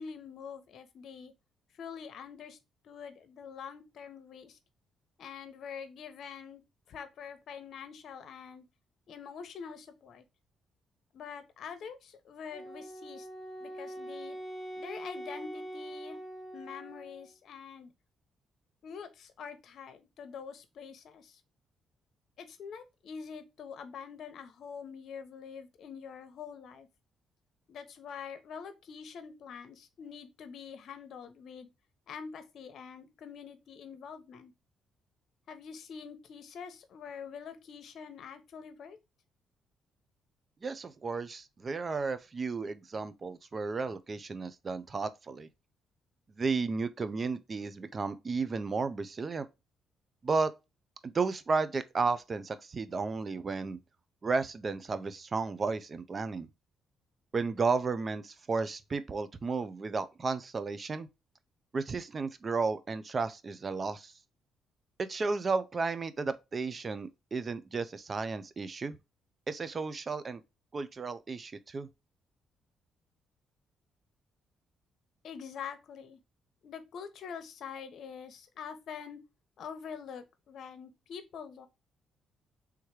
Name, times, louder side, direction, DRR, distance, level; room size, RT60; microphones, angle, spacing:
voice 1, 0.0-1.3 1.7-2.6 2.8-4.6 5.2-6.6 6.9-8.6 9.1-10.2 11.1-13.3 13.6-14.4 14.8-16.2 16.5-17.9 18.8-21.4 22.4-26.9 27.7-31.7 32.1-34.5 35.5-39.0 75.2-76.2 76.6-79.2 79.6-81.7, left 6 dB, 65° left, 0.9 m, -45 dB
Wind instrument woodwind instrument, 12.5-17.3, right 1 dB, 5° left, 1.4 m, -43 dB
voice 2, 40.6-45.5 46.4-49.5 50.2-50.5 51.0-53.8 54.2-56.5 57.3-61.1 61.7-64.1 65.0-69.0 69.5-70.4 70.7-71.9, right 4 dB, 35° right, 0.5 m, -33 dB
3.5 x 3.2 x 4.6 m
cardioid pair, 90°, 0 cm